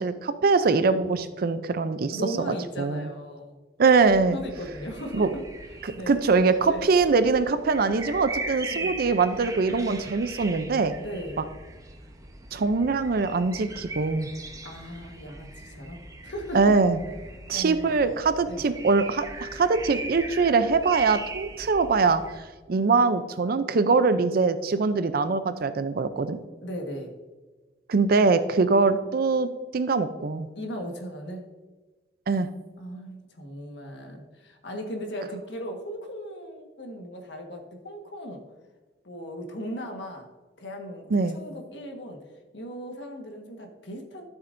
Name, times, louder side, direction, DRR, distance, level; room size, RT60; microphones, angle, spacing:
voice 1, 0.0-3.1 3.8-4.4 5.1-5.3 5.8-10.9 12.5-14.3 16.5-17.0 17.5-22.2 22.7-26.4 27.9-30.5 32.3-32.5 41.1-41.4, right 4 dB, 55° right, 11 dB, 0.5 m, -23 dB
voice 2, 2.1-3.5 4.3-5.3 5.9-6.2 6.7-6.9 8.6-8.9 11.0-11.4 14.6-16.7 17.5-17.9 18.5-18.6 26.6-27.1 30.5-31.4 32.8-38.4 39.0-40.3 40.6-42.2 42.5-44.2, equal, 80° left, 3 dB, 1.5 m, -37 dB
sound 1, 3.9-22.4, right 2 dB, 20° right, 0.9 m, -40 dB
12.5 x 7.1 x 2.6 m, 1.2 s
head